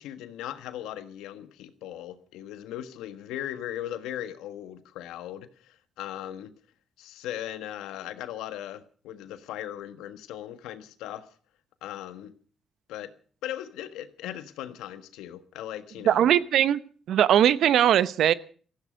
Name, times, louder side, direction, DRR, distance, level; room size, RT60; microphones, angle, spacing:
voice 1, 0.0-6.5 7.0-11.3 11.8-12.3 12.9-13.1 13.4-16.3, left 12 dB, 90° left, 11 dB, 1.4 m, -38 dB
voice 2, 16.1-16.8 17.1-18.3, right 10 dB, 75° right, 16 dB, 0.9 m, -20 dB
18.5 x 15.0 x 5.2 m, 0.43 s
cardioid pair, 70°, 0 cm